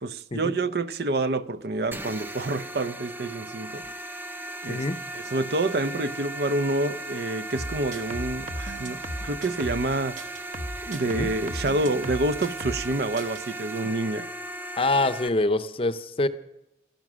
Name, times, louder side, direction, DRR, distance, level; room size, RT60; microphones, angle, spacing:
voice 1, 0.0-3.8 4.6-4.8 5.1-10.2 10.8-14.3, right 2 dB, 60° right, 0.7 m, -28 dB
sound 1, 1.9-15.3, right 1 dB, 10° right, 0.6 m, -37 dB
sound 2, 7.5-9.9 10.2-12.9 13.2-13.4, equal, 45° right, 1.3 m, -36 dB
voice 2, 14.8-16.3, left 2 dB, 30° left, 0.7 m, -25 dB
15.5 x 13.5 x 6.2 m
head